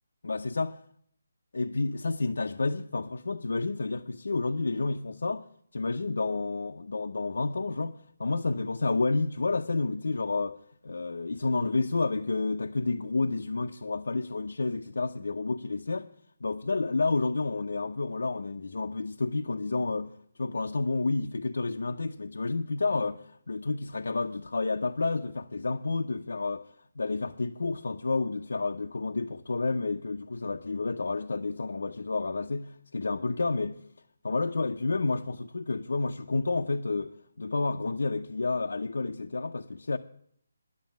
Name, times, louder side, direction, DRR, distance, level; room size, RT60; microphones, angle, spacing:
voice 1, 0.2-0.7 1.5-5.4 5.7-7.9 8.2-10.6 10.8-16.1 16.4-26.6 27.0-33.8 34.2-40.0, left 3 dB, 75° left, 0.6 m, -30 dB
10.5 x 7.4 x 8.9 m
hypercardioid pair, 175°, 0 cm